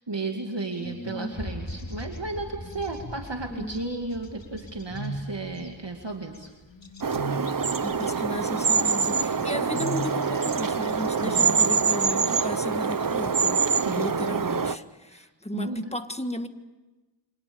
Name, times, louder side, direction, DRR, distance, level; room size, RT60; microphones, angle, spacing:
voice 1, 0.0-6.5 11.2-11.7 12.2-12.5 13.7-14.6 15.1-15.3 15.5-15.9, right 3 dB, 70° right, 2 dB, 2.4 m, -34 dB
sound 1, 0.7-1.4 1.7-2.2 2.5-3.8 4.2-5.7 6.3-12.1 12.4-13.1 13.6-14.5, right 1 dB, 80° left, 3.1 m, -40 dB
voice 2, 0.8-1.4 3.5-3.8 7.8-13.6 13.9-16.5, left 1 dB, 15° left, 8 dB, 1.7 m, -35 dB
sound 2, 1.3-7.5, left 1 dB, 35° left, 2.1 m, -41 dB
sound 3, 7.0-14.8, right 5 dB, 45° right, 0.8 m, -25 dB
29.0 x 25.5 x 7.1 m, 1.1 s
wide cardioid pair, 40°, 44 cm